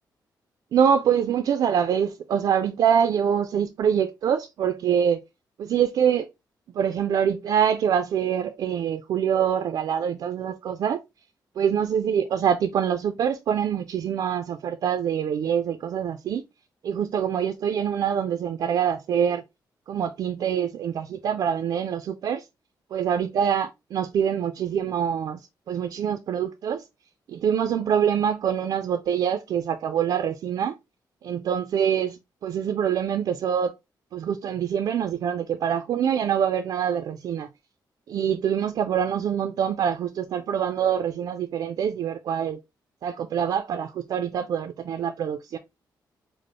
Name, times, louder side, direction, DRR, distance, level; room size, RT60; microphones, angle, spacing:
voice 1, 0.7-5.2 5.6-6.3 6.7-11.0 11.6-16.4 16.8-19.4 19.9-22.5 22.9-26.8 27.3-30.8 31.2-33.7 34.1-37.5 38.1-42.6 43.0-45.6, right 8 dB, 60° right, 0.4 m, -25 dB
5.0 x 2.0 x 2.9 m
wide cardioid pair, 170°, 8 cm